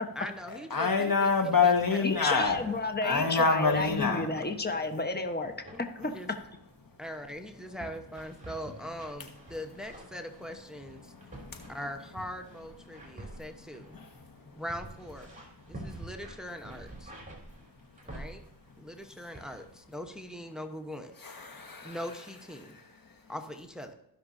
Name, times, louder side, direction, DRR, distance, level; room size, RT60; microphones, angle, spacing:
voice 1, 0.1-1.3 1.6-2.6 3.1-3.3 6.0-6.3 7.0-11.1 11.7-14.0 14.5-15.3 15.7-17.1 18.0-18.4 18.8-21.1 21.8-22.8 23.3-23.9, equal, ahead, 1.1 m, -41 dB
voice 2, 0.7-2.6 3.0-4.3 11.0-11.7 12.9-13.4 13.9-14.6 21.2-22.0 22.7-23.1, left 4 dB, 50° left, 1.7 m, -28 dB
sound 1, 1.6-1.9 2.2-2.8 3.1-3.4 3.7-5.1 5.4-5.8 6.3-6.6 7.2-18.8 19.3-19.8 20.1-20.3, right 1 dB, 15° right, 3.1 m, -48 dB
voice 3, 2.0-5.5 6.0-6.1, left 3 dB, 25° left, 1.3 m, -31 dB
16.0 x 6.1 x 2.8 m
cardioid pair, 45°, 43 cm